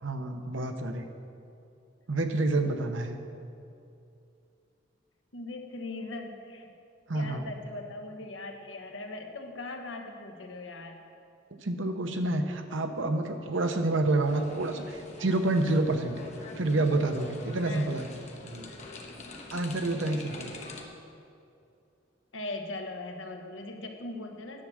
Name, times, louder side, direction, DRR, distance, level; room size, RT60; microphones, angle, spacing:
voice 1, 0.0-1.0 2.1-3.2 7.1-7.5 11.5-16.2 16.5-18.1 18.4-18.7 19.5-20.6, right 2 dB, 85° right, 6 dB, 0.9 m, -28 dB
voice 2, 5.3-6.7 7.1-11.0 17.6-17.9 22.3-24.6, left 2 dB, 85° left, 4 dB, 1.1 m, -40 dB
sound 1, 14.2-20.8, left 2 dB, 35° left, 1.0 m, -45 dB
10.5 x 6.3 x 7.5 m, 2.6 s
head